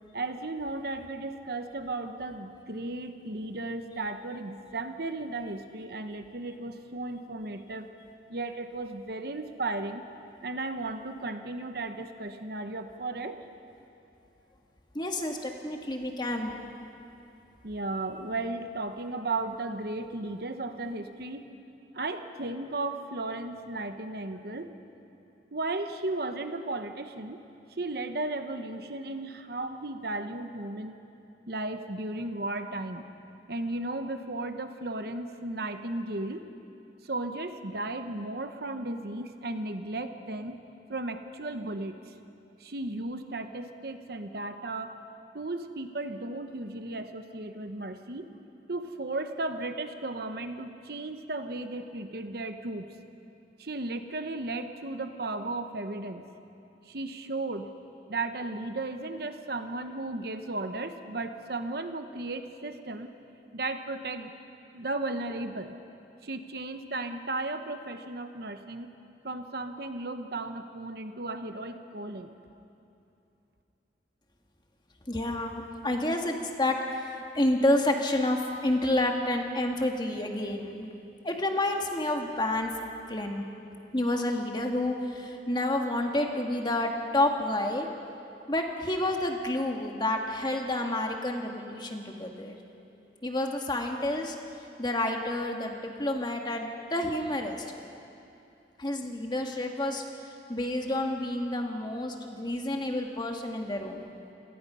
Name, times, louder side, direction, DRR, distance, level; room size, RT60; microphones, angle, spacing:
voice 1, 0.1-7.9 8.3-10.0 10.4-13.4 17.6-21.5 21.9-24.7 25.5-27.4 27.8-30.9 31.5-33.0 33.5-36.4 37.0-40.6 40.9-42.1 42.6-45.0 45.3-48.3 48.7-52.9 53.6-56.3 56.9-57.7 58.1-63.1 63.5-64.3 64.7-65.7 66.2-68.9 69.2-72.4, right 2 dB, 60° right, 8 dB, 1.1 m, -35 dB
voice 2, 14.9-16.5 75.1-80.9 81.2-83.4 83.9-87.9 88.5-92.6 93.2-94.3 94.8-97.6 98.8-100.0 100.5-104.1, left 1 dB, 25° left, 3 dB, 1.6 m, -29 dB
28.0 x 18.0 x 5.6 m, 2.7 s
head